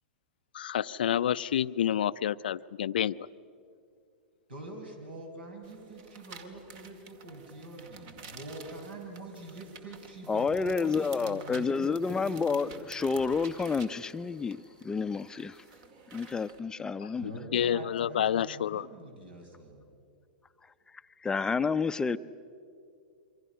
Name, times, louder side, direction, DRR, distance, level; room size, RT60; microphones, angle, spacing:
voice 1, 0.5-3.3 17.5-18.9, left 10 dB, 70° left, 0.5 m, -28 dB
voice 2, 4.5-12.8 17.2-19.8, right 2 dB, 75° right, 6.0 m, -45 dB
sound 1, 5.6-16.6, right 5 dB, 50° right, 2.1 m, -51 dB
voice 3, 10.3-15.5 16.1-17.3 21.2-22.2, left 5 dB, 15° left, 0.6 m, -29 dB
27.5 x 24.5 x 5.7 m
hypercardioid pair, 110°, 5 cm